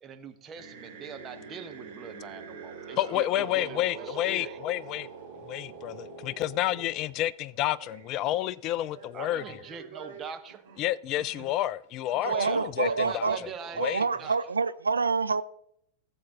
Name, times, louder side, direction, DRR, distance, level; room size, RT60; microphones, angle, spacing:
voice 1, 0.0-4.6 9.1-10.6 12.1-14.4, right 6 dB, 25° right, 1.2 m, -42 dB
sound 1, 0.5-7.0 7.5-8.1 8.8-11.6 12.1-12.2 12.4-12.5 12.9-13.5, right 5 dB, 55° right, 4.7 m, -45 dB
voice 2, 3.0-5.1 5.5-9.6 10.8-13.3 13.8-14.0, left 14 dB, 40° left, 0.4 m, -30 dB
voice 3, 12.2-13.4 13.8-15.4, right 4 dB, 75° right, 0.4 m, -27 dB
17.5 x 7.8 x 4.0 m
figure-of-eight pair, 90°, 0 cm